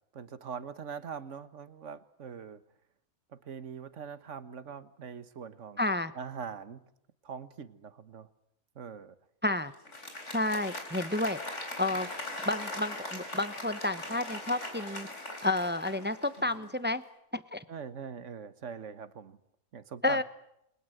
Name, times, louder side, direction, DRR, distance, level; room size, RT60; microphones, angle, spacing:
voice 1, 0.1-2.6 3.3-5.8 6.2-6.8 7.2-8.3 8.8-9.2 17.7-19.4 19.7-20.2, right 6 dB, 60° right, 13 dB, 1.6 m, -42 dB
voice 2, 5.8-6.1 9.4-9.7 10.3-11.4 11.8-12.1 12.4-15.1 15.4-17.0 17.3-17.6 20.0-20.2, left 2 dB, 10° right, 12 dB, 0.8 m, -30 dB
Applause, 9.7-16.7, left 1 dB, 60° left, 4.6 m, -40 dB
29.5 x 22.0 x 8.0 m, 0.78 s
omnidirectional pair, 1.4 m